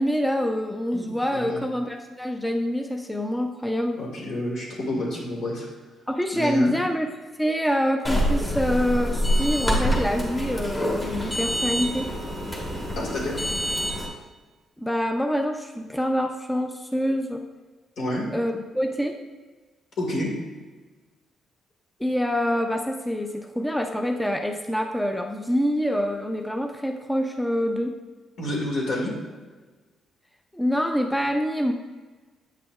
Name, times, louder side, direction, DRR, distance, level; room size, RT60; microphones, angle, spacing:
voice 1, 0.0-4.0 6.1-7.1 7.4-12.1 14.8-17.4 18.3-19.2 22.0-27.9 30.5-31.7, equal, 5° left, 4 dB, 0.4 m, -26 dB
voice 2, 0.9-1.6 4.0-5.7 6.3-6.7 13.0-13.4 18.0-18.3 20.0-20.3 28.4-29.1, left 1 dB, 70° left, -2 dB, 1.9 m, -29 dB
sound 1, 8.0-14.1, equal, 25° left, 1.5 m, -26 dB
7.8 x 5.8 x 2.4 m, 1.3 s
cardioid pair, 90°, 0 cm